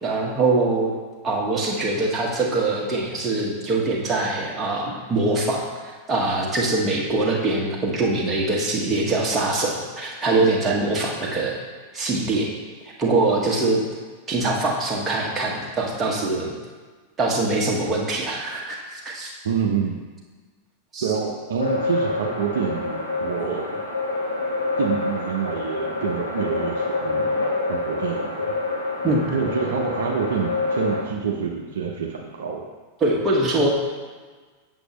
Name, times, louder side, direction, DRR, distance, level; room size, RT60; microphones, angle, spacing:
voice 1, 0.0-0.9 1.2-5.6 6.1-11.6 11.9-12.5 13.0-13.8 14.3-16.5 17.2-19.3 20.9-21.1 29.0-29.4 33.0-33.7, right 2 dB, 20° right, -2 dB, 1.6 m, -23 dB
voice 2, 19.4-20.0 21.0-23.8 24.8-27.4 27.7-28.5 29.3-32.6, right 6 dB, 60° right, 0 dB, 0.7 m, -27 dB
sound 1, 21.6-31.0, left 3 dB, 75° left, 1.3 m, -27 dB
7.9 x 7.0 x 3.1 m, 1.4 s
figure-of-eight pair, 90°, 0 cm